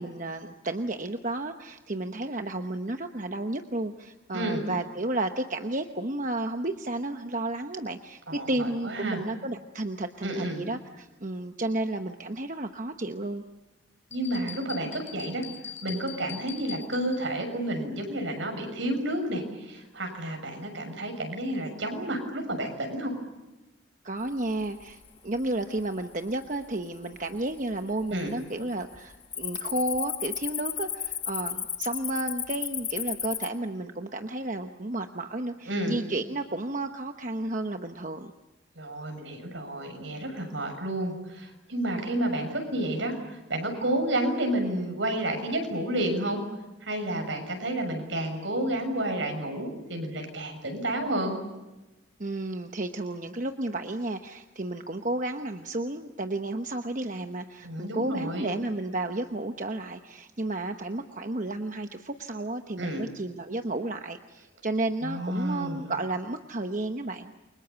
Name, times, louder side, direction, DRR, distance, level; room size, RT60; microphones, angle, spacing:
voice 1, 0.0-13.4 24.0-38.3 52.2-67.3, right 2 dB, 40° right, 6 dB, 1.0 m, -32 dB
voice 2, 8.3-9.2 10.2-10.6 14.1-23.1 28.1-28.3 35.6-36.0 38.7-46.4 46.8-51.4 57.6-58.5 62.8-63.0 65.0-65.9, right 1 dB, 75° right, 5 dB, 6.8 m, -30 dB
sound 1, 14.1-17.5, left 7 dB, 15° left, 2.7 m, -42 dB
Cricket, 24.5-24.9 25.4-25.8 26.4-26.5 27.1-27.7 28.0-28.3 28.6-33.5, left 9 dB, 30° left, 1.6 m, -34 dB
29.5 x 24.5 x 7.0 m, 1.0 s
head